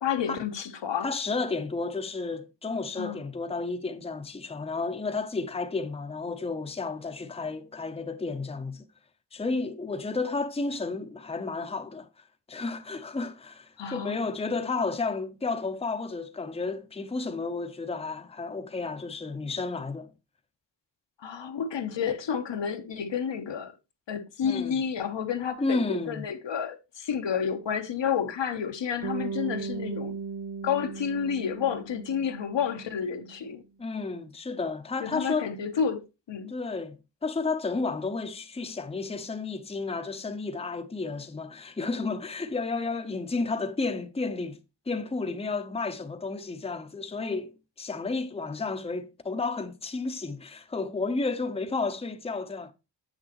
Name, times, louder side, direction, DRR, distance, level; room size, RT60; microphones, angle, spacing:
voice 1, 0.0-1.1 3.0-3.2 13.8-14.2 21.2-23.7 24.1-30.1 30.6-33.6 35.0-36.0 36.3-36.5, left 7 dB, 75° left, 1.0 m, -30 dB
voice 2, 1.0-8.8 9.3-12.1 12.5-20.1 24.4-24.7 25.6-26.2 33.8-35.5 36.5-44.6 44.9-47.5 47.8-52.7, left 3 dB, 15° left, 0.7 m, -32 dB
Bass guitar, 29.0-33.3, right 5 dB, 75° right, 0.8 m, -37 dB
7.4 x 6.3 x 2.9 m
cardioid pair, 70°, 43 cm